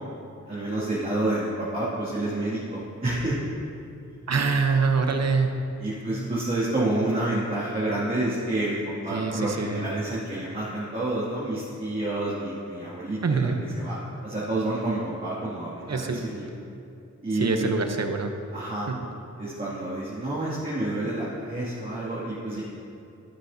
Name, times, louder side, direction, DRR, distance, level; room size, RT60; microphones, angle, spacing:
voice 1, 0.5-3.4 5.8-13.5 13.8-14.0 14.2-16.5 17.2-17.7 18.5-18.9 19.4-22.6, right 1 dB, 30° right, -10 dB, 2.4 m, -29 dB
voice 2, 4.3-5.6 9.1-9.9 13.2-13.6 15.9-16.2 17.4-18.3 18.9-19.0, right 4 dB, 55° right, 5 dB, 0.9 m, -25 dB
13.5 x 11.5 x 2.8 m, 2.6 s
wide cardioid pair, 125°, 31 cm